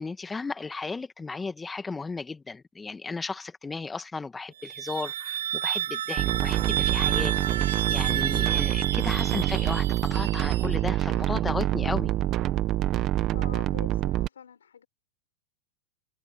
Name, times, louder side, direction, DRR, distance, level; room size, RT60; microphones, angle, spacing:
voice 1, 0.0-12.1, left 4 dB, 15° left, 2.0 m, -35 dB
sound 1, 4.5-11.2, right 11 dB, 75° right, 4.4 m, -31 dB
sound 2, 6.2-14.3, right 15 dB, 40° right, 1.0 m, -26 dB
voice 2, 13.3-14.9, left 8 dB, 85° left, 5.5 m, -45 dB
hypercardioid pair, 105°, 0 cm